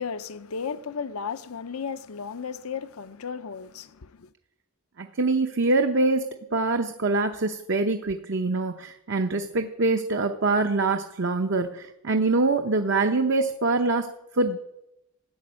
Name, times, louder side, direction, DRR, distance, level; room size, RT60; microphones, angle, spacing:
voice 1, 0.0-4.3, left 6 dB, 80° left, 0.7 m, -34 dB
voice 2, 5.0-14.6, right 3 dB, 55° right, 0.8 m, -24 dB
14.5 x 7.0 x 9.8 m
head